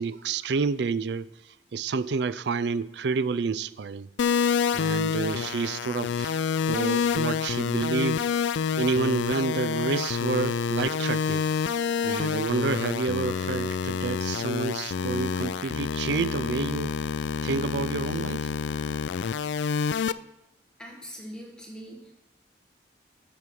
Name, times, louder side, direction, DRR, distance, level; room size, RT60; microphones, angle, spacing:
voice 1, 0.0-4.1 4.7-6.4 6.7-8.3 8.8-11.4 12.0-16.9 17.4-18.5, right 4 dB, 65° right, 16 dB, 0.4 m, -29 dB
sound 1, 4.2-20.1, left 6 dB, 75° left, 0.3 m, -28 dB
voice 2, 20.8-22.1, equal, 5° left, -1 dB, 1.6 m, -42 dB
12.5 x 7.1 x 4.8 m, 0.91 s
head